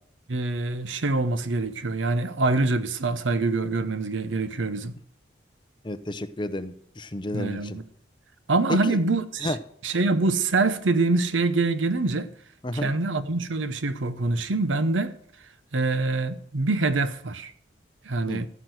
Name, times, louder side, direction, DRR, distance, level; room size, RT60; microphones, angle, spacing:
voice 1, 0.3-4.9 7.3-7.8 8.5-9.6 9.8-12.3 12.7-15.2 15.7-17.5 18.0-18.5, right 3 dB, 90° right, 0.9 m, -25 dB
voice 2, 5.8-7.8 8.7-9.0 9.4-9.6 12.6-12.9 18.3-18.4, left 1 dB, 25° left, 0.7 m, -31 dB
15.0 x 6.2 x 7.8 m
head